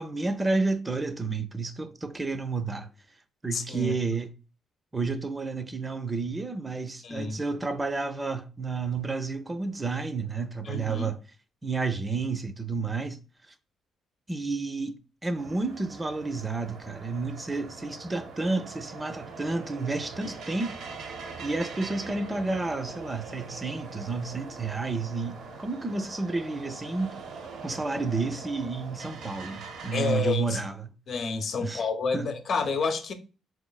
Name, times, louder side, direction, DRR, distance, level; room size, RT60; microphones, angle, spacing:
voice 1, 0.0-2.9 3.4-4.3 4.9-11.2 11.6-13.2 14.3-20.8 21.4-27.2 27.6-30.9 31.6-31.9 32.1-32.3, right 3 dB, 20° right, 0.4 m, -31 dB
voice 2, 3.5-3.9 7.0-7.4 10.6-11.1 29.9-30.6 31.1-33.1, left 4 dB, 55° left, 0.7 m, -29 dB
sound 1, 15.3-30.2, right 4 dB, 75° right, 0.7 m, -42 dB
4.0 x 3.1 x 2.2 m
cardioid pair, 90°, 0 cm